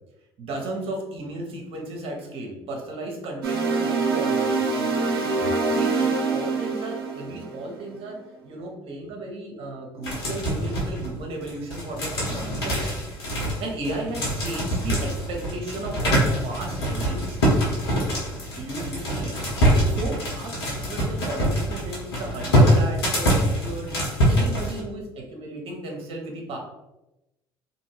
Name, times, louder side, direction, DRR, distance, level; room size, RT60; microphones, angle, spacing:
voice 1, 0.4-5.4 5.7-8.2 8.4-12.9 13.4-17.4 18.6-19.3 19.7-23.9 24.3-26.6, right 2 dB, 50° right, 0 dB, 0.9 m, -34 dB
sound 1, 3.4-7.8, right 4 dB, 80° right, 0.5 m, -25 dB
sound 2, 10.0-11.1 11.4-24.8, equal, 80° left, 1.0 m, -24 dB
2.6 x 2.5 x 3.2 m, 0.94 s
hypercardioid pair, 60°, 13 cm